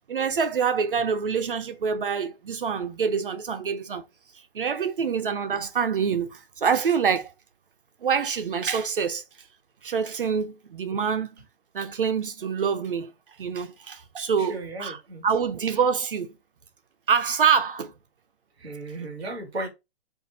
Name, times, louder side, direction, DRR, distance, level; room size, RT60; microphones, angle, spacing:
voice 1, 0.1-4.0 4.5-7.3 8.0-9.2 9.8-11.4 11.7-13.1 13.4-16.3 17.1-17.9, right 6 dB, 55° right, 0.5 m, -26 dB
voice 2, 14.4-15.2 18.6-19.7, right 2 dB, ahead, 0.6 m, -35 dB
4.0 x 2.5 x 3.9 m
hypercardioid pair, 180°, 34 cm